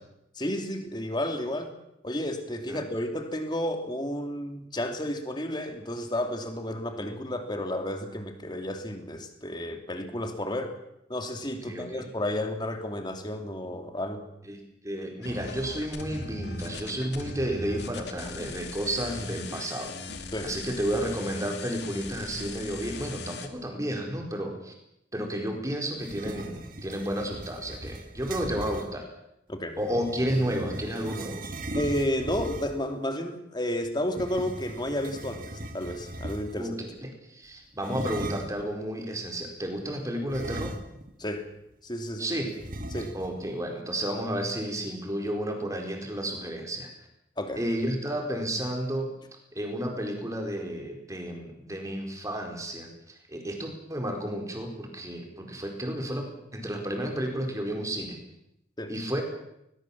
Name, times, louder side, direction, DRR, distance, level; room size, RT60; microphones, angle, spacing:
voice 1, 0.4-1.7 2.0-10.7 11.1-14.2 20.3-20.5 29.5-29.8 31.7-36.8 41.2-41.4 41.8-42.3 42.9-43.1 47.4-47.6 58.8-58.9, left 1 dB, 25° left, 5 dB, 2.8 m, -32 dB
voice 2, 11.7-12.0 14.4-20.1 20.4-24.7 25.1-29.1 29.8-31.4 36.6-40.7 42.2-42.5 43.1-46.9 47.5-49.1 49.5-58.2 58.9-59.2, right 1 dB, 15° right, 2 dB, 4.5 m, -32 dB
sound 1, 15.2-23.5, left 3 dB, 60° left, 2.4 m, -39 dB
sound 2, 26.0-28.9 29.7-32.9 34.1-36.7 37.8-38.7 40.3-41.2 41.5-41.6 42.6-43.5, right 1 dB, 45° right, 1.8 m, -38 dB
21.5 x 20.0 x 7.3 m, 0.82 s
head